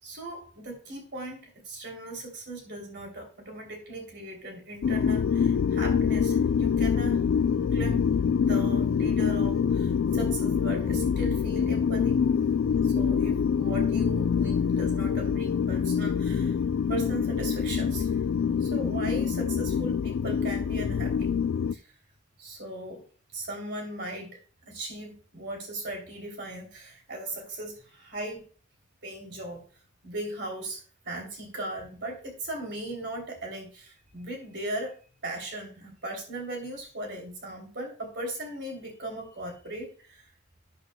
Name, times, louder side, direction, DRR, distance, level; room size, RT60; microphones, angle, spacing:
voice 1, 0.0-7.2 7.7-8.0 8.3-12.2 12.8-16.6 16.9-18.2 18.6-21.3 21.7-21.8 22.4-23.0 23.3-24.4 24.7-28.4 29.0-29.6 30.0-34.9 35.2-40.3, right 1 dB, 55° right, 1 dB, 3.0 m, -38 dB
sound 1, 4.8-21.7, left 6 dB, 75° left, 0.3 m, -25 dB
12.0 x 9.0 x 2.2 m, 0.40 s
head